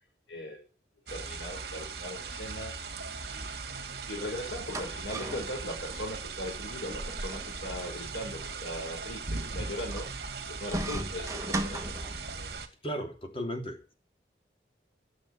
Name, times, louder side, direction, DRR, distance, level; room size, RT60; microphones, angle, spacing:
voice 1, 0.3-0.6 1.1-2.8 3.2-3.6 4.1-10.1 10.5-12.0, left 1 dB, 80° left, 6.2 m, -39 dB
sound 1, 1.1-12.7, right 4 dB, 60° right, 2.3 m, -39 dB
sound 2, 4.2-12.6, right 1 dB, 15° right, 1.3 m, -39 dB
voice 2, 12.8-13.9, equal, 30° left, 2.9 m, -35 dB
13.0 x 7.4 x 8.5 m
head